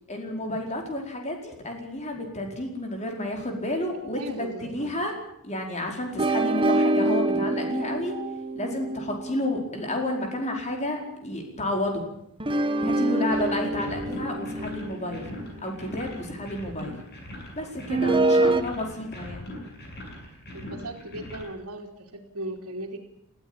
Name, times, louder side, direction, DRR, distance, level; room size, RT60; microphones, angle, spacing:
voice 1, 0.1-5.1 5.4-8.1 8.5-12.0 12.8-15.2 15.6-16.9 17.5-19.5, left 1 dB, 30° left, 2 dB, 4.8 m, -31 dB
voice 2, 4.1-4.9 13.3-14.0 18.2-18.7 20.5-23.0, right 1 dB, 70° right, -5 dB, 3.0 m, -38 dB
sound 1, 6.2-10.7 12.4-16.6 17.9-18.6, right 2 dB, 25° right, 1.2 m, -26 dB
sound 2, 13.3-21.4, left 1 dB, 50° left, 6.9 m, -41 dB
21.0 x 16.0 x 8.9 m, 0.77 s
head